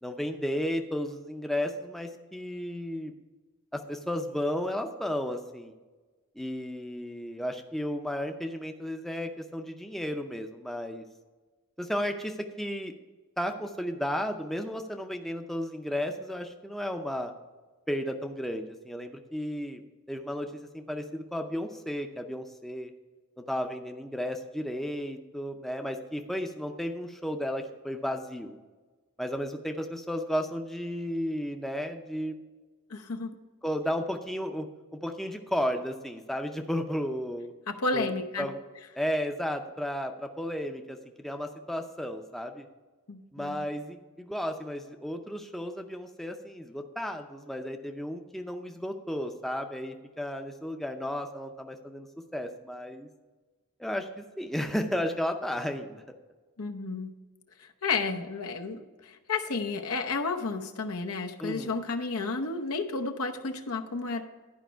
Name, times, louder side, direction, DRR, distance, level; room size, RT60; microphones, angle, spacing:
voice 1, 0.0-3.1 3.7-5.7 6.4-11.0 11.8-12.9 13.4-17.3 17.9-19.8 20.1-22.9 23.4-28.6 29.2-32.4 33.6-34.7 34.9-37.5 37.9-38.1 38.4-38.6 39.0-42.7 43.3-52.1 52.3-53.1 53.8-56.0 61.4-61.8, equal, ahead, 4 dB, 0.5 m, -33 dB
voice 2, 32.9-33.4 37.7-38.5 43.1-43.7 56.6-57.1 57.6-64.2, left 3 dB, 90° left, 5 dB, 0.8 m, -32 dB
11.5 x 5.2 x 4.6 m, 1.3 s
head